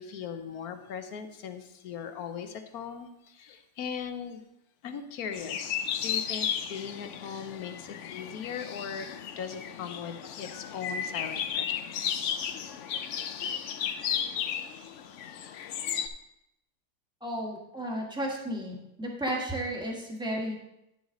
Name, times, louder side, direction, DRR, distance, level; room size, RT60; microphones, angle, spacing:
voice 1, 0.0-4.4 4.8-11.7, left 7 dB, 65° left, 8 dB, 1.1 m, -39 dB
sound 1, 5.3-16.1, left 8 dB, 90° left, 0.6 m, -34 dB
voice 2, 17.2-20.5, right 1 dB, 5° right, -1 dB, 1.3 m, -33 dB
10.0 x 7.1 x 3.8 m, 0.84 s
omnidirectional pair, 1.9 m